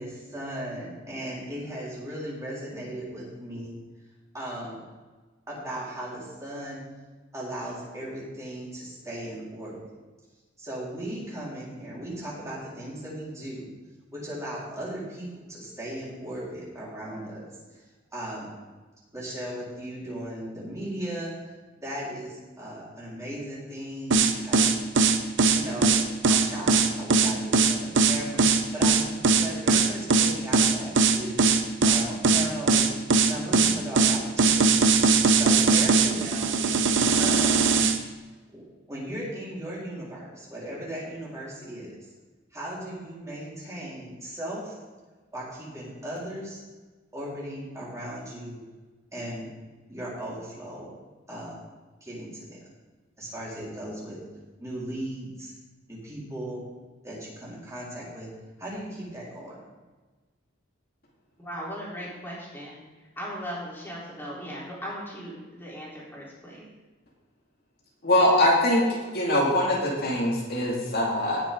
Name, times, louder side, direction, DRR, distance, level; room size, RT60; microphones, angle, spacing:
voice 1, 0.0-3.8 4.3-4.8 5.5-6.8 7.3-9.8 10.6-13.7 14.1-17.4 17.7-17.8 18.1-18.5 19.1-21.3 21.8-24.7 25.5-25.9 26.3-31.5 31.8-32.9 33.3-34.7 35.0-37.6 38.5-41.9 42.5-44.7 45.3-46.6 47.1-48.6 49.1-49.5 49.9-50.9 51.3-51.6 52.0-52.6 53.2-54.2 54.6-55.5 55.9-56.6 57.0-58.3 58.6-59.6, right 1 dB, 15° right, -7 dB, 4.3 m, -37 dB
sound 1, 24.1-38.0, right 4 dB, 65° right, 0.9 m, -20 dB
voice 2, 61.4-62.8 63.2-66.7, equal, 10° left, -6 dB, 3.9 m, -38 dB
voice 3, 68.0-68.8 69.1-71.4, left 1 dB, 55° left, -3 dB, 2.4 m, -22 dB
18.0 x 7.4 x 3.8 m, 1.3 s
head